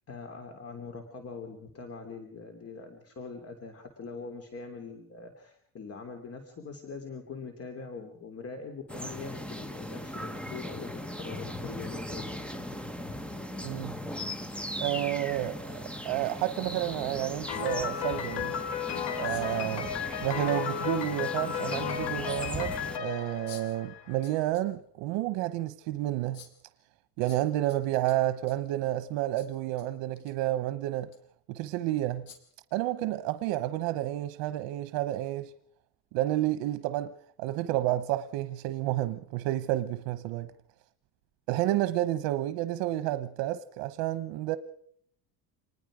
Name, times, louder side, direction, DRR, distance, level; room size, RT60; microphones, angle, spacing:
voice 1, 0.1-12.3, left 4 dB, 35° left, 3.0 m, -43 dB
sound 1, 8.9-23.0, left 1 dB, 5° left, 1.1 m, -38 dB
voice 2, 13.6-14.0 14.8-18.6 19.2-26.4 27.2-31.1 31.5-32.3 32.7-35.5 36.1-37.1 37.4-40.5 41.5-44.6, right 14 dB, 85° right, 1.1 m, -30 dB
Piano, 17.5-24.3, left 8 dB, 70° left, 3.8 m, -34 dB
sound 2, 19.2-19.6 21.1-21.2 23.5-23.8 24.2-24.7 25.1-25.2 26.3-26.6 27.3-28.7 29.4-29.8 30.1-30.3 31.0-31.2 32.3-32.6, left 7 dB, 50° left, 5.1 m, -51 dB
26.5 x 20.5 x 5.0 m
cardioid pair, 155°, 43 cm